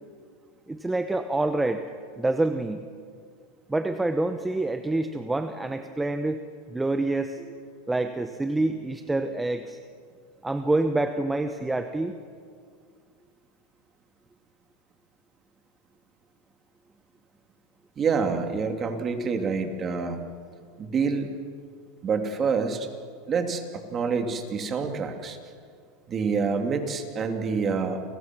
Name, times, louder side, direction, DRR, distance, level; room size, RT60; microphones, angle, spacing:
voice 1, 0.7-1.8 2.2-2.8 3.7-6.4 6.7-7.4 7.9-9.8 10.4-12.2, right 2 dB, 5° right, 8 dB, 1.0 m, -27 dB
voice 2, 18.0-20.2 20.8-21.3 22.0-22.9 23.3-25.4 26.1-28.0, right 5 dB, 25° right, 5 dB, 2.7 m, -27 dB
29.5 x 23.0 x 6.2 m, 2.2 s
supercardioid pair, 140°, 0 cm